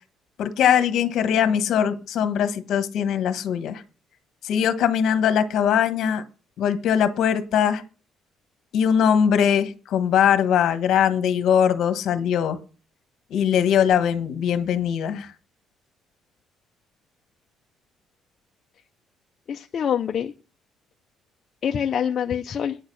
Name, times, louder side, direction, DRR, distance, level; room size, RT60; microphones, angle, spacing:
voice 1, 0.4-3.8 4.4-6.2 6.6-7.8 8.7-12.6 13.3-15.3, left 8 dB, 60° left, 10 dB, 1.2 m, -21 dB
voice 2, 19.5-20.3 21.6-22.8, left 8 dB, 40° left, 4 dB, 0.5 m, -25 dB
9.5 x 6.6 x 6.2 m, 0.35 s
cardioid pair, 160°, 0 cm